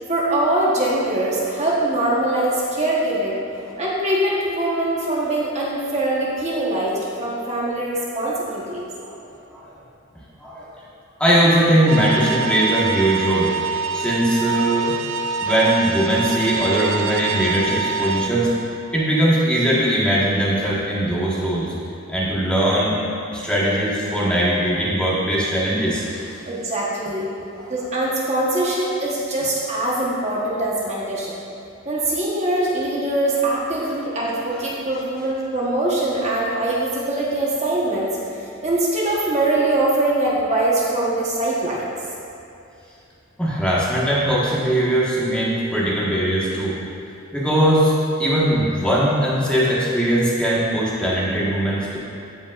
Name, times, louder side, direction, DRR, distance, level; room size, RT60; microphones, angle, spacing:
voice 1, 0.1-3.4 3.8-8.8 26.5-27.3 27.6-31.3 31.8-38.1 38.4-41.9, right 1 dB, 35° right, -5 dB, 1.1 m, -22 dB
voice 2, 11.2-13.5 13.9-14.9 15.4-18.5 18.9-21.7 22.1-22.9 23.3-26.2 27.6-27.7 43.4-46.7 47.3-52.0, right 1 dB, 5° left, -8 dB, 1.4 m, -20 dB
sound 1, 11.9-18.3, right 5 dB, 80° right, 0.4 m, -26 dB
15.0 x 5.3 x 2.4 m, 2.6 s
head